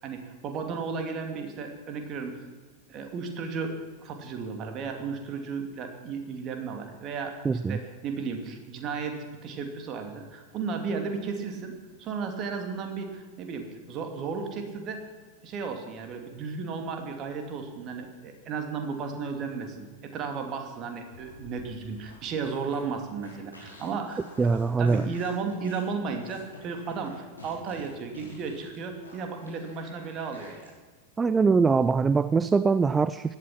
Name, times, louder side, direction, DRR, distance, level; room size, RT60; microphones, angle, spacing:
voice 1, 0.0-2.4 2.9-15.1 15.4-19.9 20.1-24.2 24.8-30.7, right 5 dB, 35° right, 5 dB, 2.7 m, -34 dB
voice 2, 7.4-7.8 24.4-25.1 31.2-33.3, right 4 dB, 15° right, 15 dB, 0.4 m, -23 dB
sound 1, 21.1-30.7, left 2 dB, 80° left, 5.2 m, -50 dB
17.0 x 12.0 x 6.0 m, 1.5 s
figure-of-eight pair, 90°, 0 cm